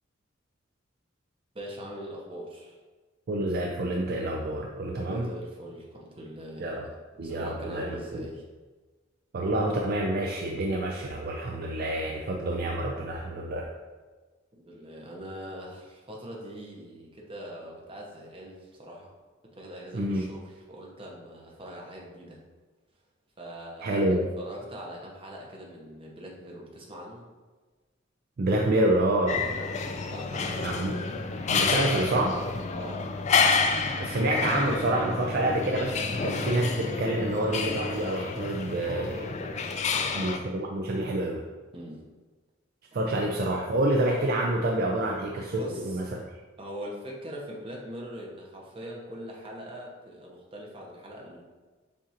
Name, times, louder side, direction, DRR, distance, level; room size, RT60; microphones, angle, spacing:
voice 1, 1.5-2.8 4.9-6.9 7.2-8.4 14.5-19.1 19.5-22.4 23.4-27.3 29.6-29.8 30.1-30.9 32.7-33.1 39.9-40.5 41.7-42.0 45.6-46.0 46.6-51.4, equal, 30° right, -2 dB, 0.8 m, -42 dB
voice 2, 3.3-5.3 6.6-6.8 7.2-8.2 9.3-13.6 19.9-20.3 23.8-24.3 28.4-29.4 30.6-30.9 31.5-32.4 34.0-39.5 40.2-41.4 42.9-46.2, right 1 dB, 50° right, 0 dB, 0.4 m, -28 dB
sound 1, 29.3-40.4, left 4 dB, 35° left, 0.3 m, -29 dB
7.2 x 2.5 x 2.8 m, 1.3 s
head